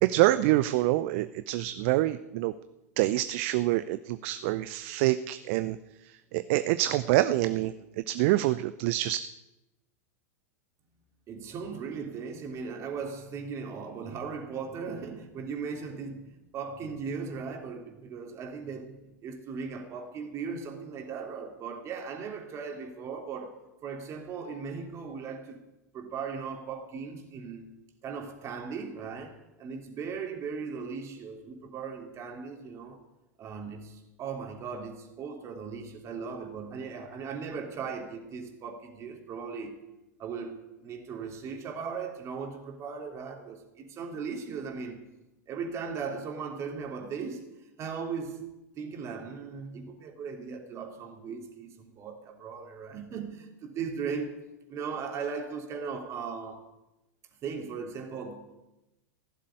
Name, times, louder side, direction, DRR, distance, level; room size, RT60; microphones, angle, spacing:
voice 1, 0.0-2.5 3.0-5.8 6.3-7.7 8.1-9.2, right 16 dB, 50° right, 0.6 m, -26 dB
voice 2, 11.3-25.6 25.9-27.6 28.0-33.0 33.4-39.8 40.2-45.0 45.5-47.5 47.8-48.5 48.8-54.3 54.7-56.7 57.4-58.6, right 5 dB, 35° right, 3.3 m, -38 dB
16.5 x 7.5 x 9.9 m
figure-of-eight pair, 90°, 9 cm